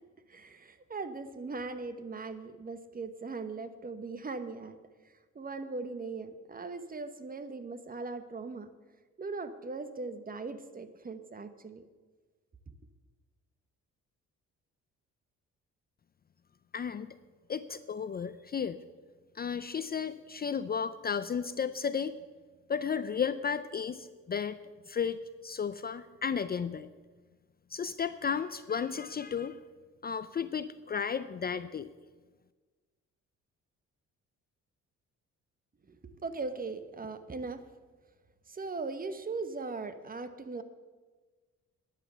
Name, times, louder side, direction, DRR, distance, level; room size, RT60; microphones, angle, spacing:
voice 1, 0.3-4.8 5.3-8.7 9.2-11.8 35.9-37.6 38.5-40.6, right 3 dB, 30° right, 11 dB, 1.1 m, -39 dB
voice 2, 16.7-17.2 17.5-18.8 19.4-22.2 22.7-24.6 24.9-26.9 27.7-29.6 30.0-31.9, left 6 dB, 30° left, 13 dB, 0.5 m, -33 dB
11.5 x 9.3 x 6.8 m, 1.4 s
cardioid pair, 90°, 30 cm